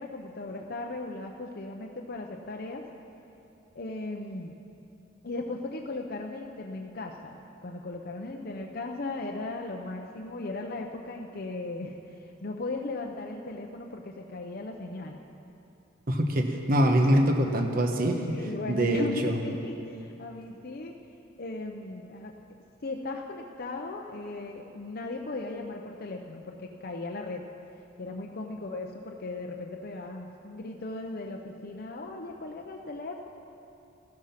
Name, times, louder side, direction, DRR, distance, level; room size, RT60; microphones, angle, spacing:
voice 1, 0.0-2.8 3.7-4.5 5.2-7.3 7.6-15.2 18.3-20.9 21.4-22.3 22.8-27.4 28.0-33.3, left 2 dB, 50° left, 1 dB, 0.7 m, -37 dB
voice 2, 16.1-19.4, equal, 50° right, 4 dB, 1.2 m, -24 dB
15.0 x 12.5 x 5.8 m, 2.8 s
head